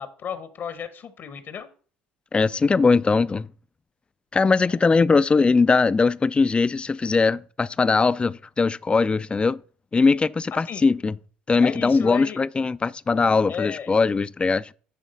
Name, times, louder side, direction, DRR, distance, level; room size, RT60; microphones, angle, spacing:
voice 1, 0.0-1.7 4.7-4.8 10.5-10.8 11.6-12.4 13.5-13.9, left 7 dB, 50° left, 0.9 m, -33 dB
voice 2, 2.3-3.5 4.3-9.6 9.9-11.2 11.5-14.7, left 4 dB, 25° left, 0.4 m, -20 dB
10.0 x 3.6 x 5.2 m
hypercardioid pair, 65°, 5 cm